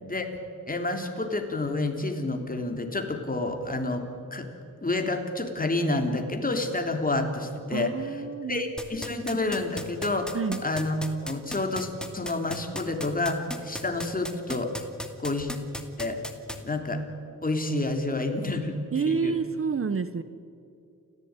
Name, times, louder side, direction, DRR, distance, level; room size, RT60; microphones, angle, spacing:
voice 1, 0.7-4.1 4.3-4.5 4.8-7.9 8.5-10.4 10.6-11.0 11.2-14.7 15.2-15.5 16.0-16.2 16.6-17.0 17.4-18.8 19.1-19.3, left 2 dB, 25° left, 4 dB, 3.2 m, -29 dB
voice 2, 7.7-8.7 9.1-9.2 10.3-10.6 18.9-20.2, right 5 dB, 40° right, 12 dB, 0.9 m, -29 dB
sound 1, 8.8-16.6, equal, ahead, 2.3 m, -35 dB
29.0 x 15.0 x 9.6 m, 2.6 s
wide cardioid pair, 95°, 34 cm